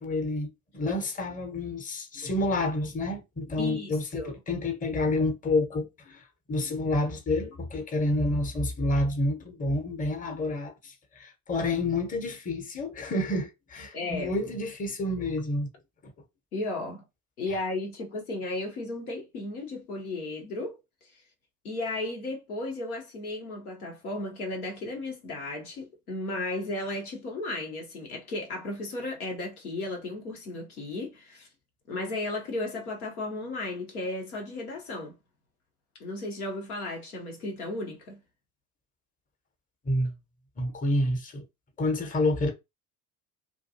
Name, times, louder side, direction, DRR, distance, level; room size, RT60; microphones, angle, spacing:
voice 1, 0.0-15.7 16.0-16.1 39.8-40.1 40.6-41.4 41.8-42.5, left 2 dB, 20° left, 0.8 m, -29 dB
voice 2, 3.6-4.4 13.9-14.3 16.5-17.0 17.4-21.2 21.6-31.5 31.9-35.2 36.0-38.2, left 2 dB, 85° left, 0.8 m, -35 dB
2.5 x 2.3 x 2.7 m
figure-of-eight pair, 60°, 44 cm